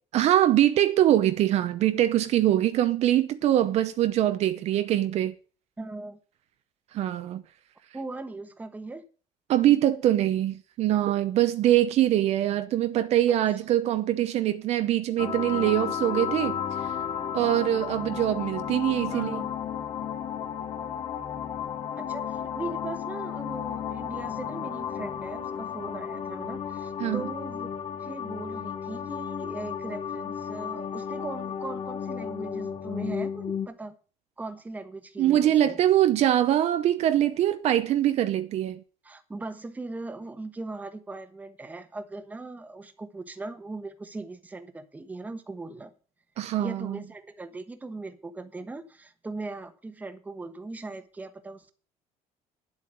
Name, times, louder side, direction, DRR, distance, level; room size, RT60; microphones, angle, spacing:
voice 1, 0.1-5.3 6.9-7.4 9.5-16.6 17.3-19.4 27.0-27.2 35.2-38.8 46.4-47.0, right 12 dB, 55° right, 0.8 m, -23 dB
voice 2, 5.8-6.2 7.9-9.0 13.6-13.7 19.1-19.5 22.0-33.9 34.4-35.8 39.0-45.9 46.6-51.7, right 3 dB, 10° right, 1.1 m, -39 dB
sound 1, 15.2-33.7, left 8 dB, 45° left, 1.3 m, -33 dB
10.5 x 8.0 x 7.4 m
cardioid pair, 165°, 14 cm